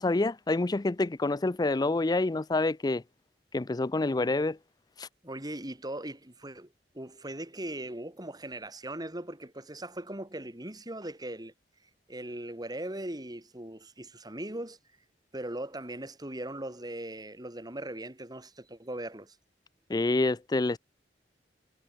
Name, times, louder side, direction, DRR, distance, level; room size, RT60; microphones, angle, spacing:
voice 1, 0.0-3.0 3.5-4.6 5.0-5.1 19.9-20.8, left 2 dB, 25° left, 0.5 m, -27 dB
voice 2, 5.2-6.7 6.9-11.5 12.1-14.8 15.3-19.4, right 1 dB, 25° right, 3.9 m, -39 dB
head